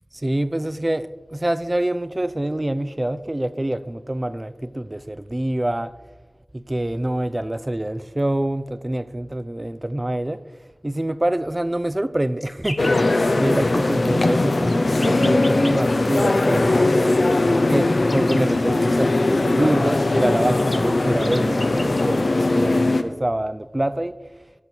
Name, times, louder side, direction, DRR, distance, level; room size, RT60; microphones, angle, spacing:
voice 1, 0.1-5.9 6.5-10.4 10.8-16.9 17.7-24.1, right 1 dB, 30° right, 0.5 m, -25 dB
sound 1, 12.4-13.0 14.5-15.8 17.3-18.6 20.0-20.1 20.2-22.0, left 1 dB, 25° left, 0.8 m, -37 dB
sound 2, 12.8-23.0, left 2 dB, 80° left, 0.7 m, -20 dB
12.0 x 6.8 x 4.5 m
wide cardioid pair, 40°, 0 cm